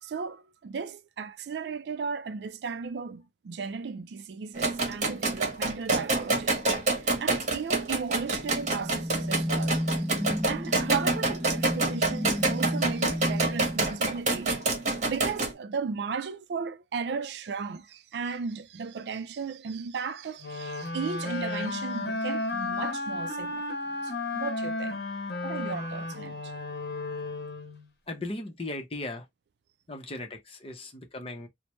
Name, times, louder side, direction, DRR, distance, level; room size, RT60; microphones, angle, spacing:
voice 1, 0.0-6.6 6.9-10.1 10.4-14.6 15.1-23.6 24.0-25.0 25.4-26.5, right 5 dB, 65° right, 0.3 m, -35 dB
sound 1, 4.5-15.5, right 2 dB, 45° right, 1.0 m, -28 dB
sound 2, 8.3-14.7, equal, 10° right, 0.6 m, -32 dB
sound 3, 20.4-27.9, left 2 dB, 65° left, 0.8 m, -33 dB
voice 2, 28.1-29.3 29.9-31.5, left 2 dB, 35° left, 0.7 m, -37 dB
3.1 x 2.1 x 3.0 m
head